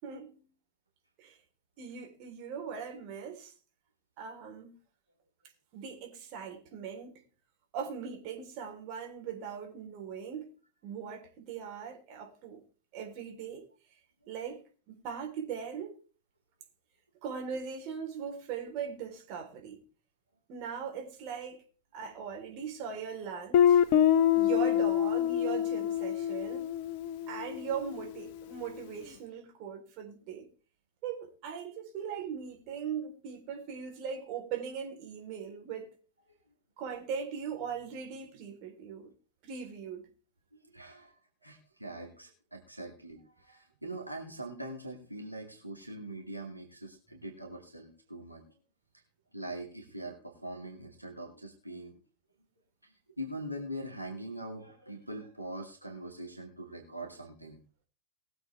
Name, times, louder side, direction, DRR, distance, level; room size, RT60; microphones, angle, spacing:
voice 1, 0.0-0.5 1.2-1.4 1.8-3.5 4.2-4.8 5.7-7.2 7.7-10.5 10.8-12.6 12.9-13.7 14.3-14.6 14.9-16.0 17.2-19.8 20.5-21.6 21.9-23.8 24.3-26.7 27.3-30.5 31.0-35.9 36.8-39.1 39.4-40.1 42.5-42.6, right 7 dB, 40° right, 3.8 m, -40 dB
Guitar, 23.5-28.2, left 10 dB, 45° left, 0.8 m, -26 dB
voice 2, 40.7-41.1 41.4-48.5 49.3-51.9 52.8-57.6, right 1 dB, 90° right, 2.4 m, -42 dB
20.0 x 7.8 x 3.4 m
figure-of-eight pair, 90°, 0 cm